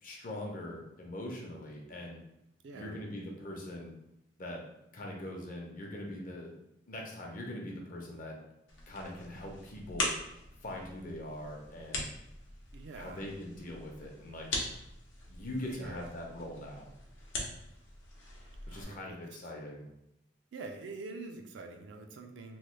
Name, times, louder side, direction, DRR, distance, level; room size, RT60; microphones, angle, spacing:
voice 1, 0.0-2.2 2.7-3.9 4.4-4.6 4.9-6.5 6.9-8.4 8.9-10.1 10.6-12.0 12.9-14.5 15.3-16.9 18.7-19.8, left 1 dB, 50° left, 0 dB, 0.6 m, -42 dB
voice 2, 2.6-3.0 12.7-13.3 15.7-16.1 18.7-19.2 20.5-22.6, right 3 dB, 70° right, 5 dB, 0.4 m, -45 dB
sound 1, 8.7-18.8, left 2 dB, 90° left, 0.7 m, -41 dB
3.1 x 2.2 x 3.1 m, 0.83 s
head